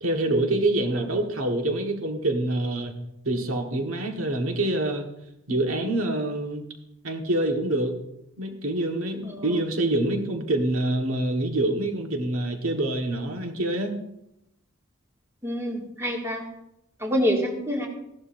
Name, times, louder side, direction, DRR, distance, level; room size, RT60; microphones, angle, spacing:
voice 1, 0.0-2.9 3.2-5.1 5.5-6.6 7.0-8.0 8.4-14.0, right 1 dB, 90° right, 3 dB, 1.5 m, -26 dB
voice 2, 15.4-16.4 17.0-17.9, equal, 15° right, -1 dB, 2.1 m, -26 dB
16.0 x 12.0 x 2.6 m, 0.84 s
head